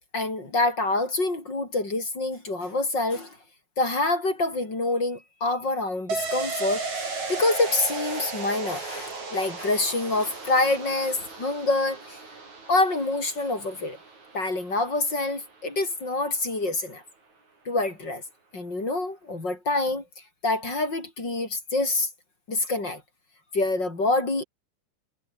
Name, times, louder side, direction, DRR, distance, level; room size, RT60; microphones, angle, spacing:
voice 1, 0.1-3.4 3.8-12.2 12.7-14.0 14.3-17.0 17.7-18.2 18.5-20.0 20.4-22.1 22.5-23.0 23.5-24.4, left 2 dB, 30° left, 5.8 m, -26 dB
sound 1, 6.1-15.5 15.8-15.9, right 4 dB, 60° right, 7.9 m, -35 dB
omnidirectional pair, 3.8 m